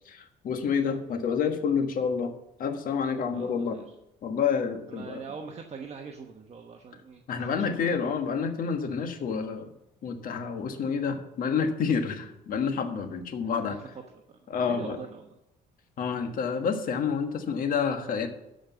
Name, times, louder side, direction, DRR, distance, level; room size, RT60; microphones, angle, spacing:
voice 1, 0.0-2.3 2.6-3.8 4.2-5.2 7.3-9.7 10.0-13.8 14.5-15.0 16.0-18.3, left 6 dB, 55° left, 6 dB, 1.5 m, -28 dB
voice 2, 3.3-3.9 4.9-7.2 13.4-13.9 14.3-14.4 14.7-15.4, right 5 dB, 40° right, 3 dB, 1.1 m, -42 dB
13.0 x 5.1 x 7.0 m, 0.86 s
cardioid pair, 110°, 17 cm